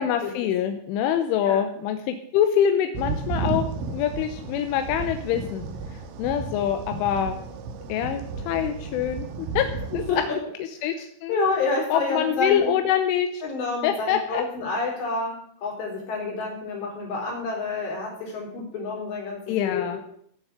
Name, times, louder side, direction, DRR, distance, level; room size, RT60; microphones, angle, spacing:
voice 1, 0.0-5.6 5.9-7.4 7.9-10.0 10.8-11.4 11.9-13.4 13.8-14.4 19.5-20.0, left 9 dB, 85° left, 7 dB, 3.3 m, -25 dB
sound 1, 2.9-10.3, right 4 dB, 80° right, 3.8 m, -33 dB
voice 2, 11.3-12.7 13.4-20.0, left 3 dB, 60° left, -1 dB, 6.2 m, -28 dB
15.5 x 7.2 x 8.0 m, 0.67 s
omnidirectional pair, 5.6 m